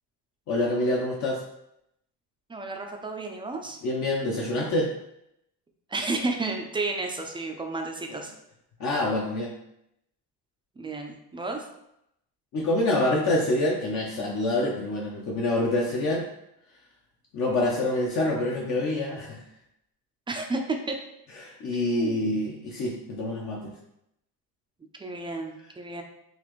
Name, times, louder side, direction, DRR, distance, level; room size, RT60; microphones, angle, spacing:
voice 1, 0.5-1.4 3.8-4.9 8.1-8.2 8.8-9.5 12.5-16.2 17.3-19.4 21.4-23.7, left 1 dB, 50° left, -2 dB, 0.7 m, -26 dB
voice 2, 2.5-3.8 5.9-8.3 10.8-11.7 20.3-21.0 21.9-22.2 25.0-26.0, right 3 dB, 15° right, 2 dB, 0.4 m, -32 dB
4.1 x 2.5 x 3.0 m, 0.79 s
cardioid pair, 120°, 38 cm